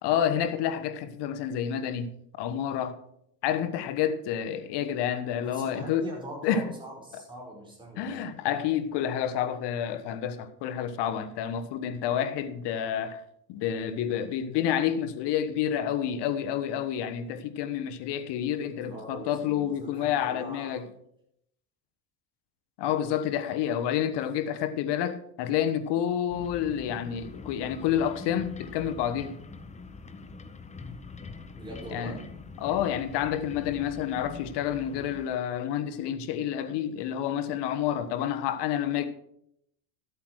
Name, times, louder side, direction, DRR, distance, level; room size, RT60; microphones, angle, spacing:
voice 1, 0.0-3.0 3.4-6.1 6.4-6.7 8.0-13.2 13.5-20.9 22.8-29.4 31.9-32.2 32.6-39.1, left 9 dB, 60° left, 1.2 m, -29 dB
voice 2, 5.4-8.3 18.6-20.8 31.6-32.2, equal, 10° right, 5.3 m, -42 dB
sound 1, 26.3-35.3, left 4 dB, 15° left, 0.8 m, -44 dB
12.5 x 8.4 x 4.7 m
supercardioid pair, 115°, 47 cm